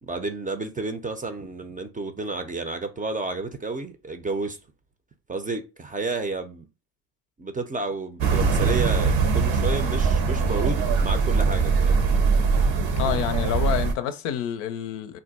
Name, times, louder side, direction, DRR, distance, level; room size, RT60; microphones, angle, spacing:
voice 1, 0.0-4.6 5.3-6.7 7.4-12.0, right 3 dB, 20° right, 0.4 m, -31 dB
sound 1, 8.2-13.9, right 4 dB, 75° right, 0.8 m, -22 dB
voice 2, 13.0-15.2, left 10 dB, 85° left, 0.6 m, -28 dB
2.5 x 2.2 x 4.0 m
supercardioid pair, 60°, 47 cm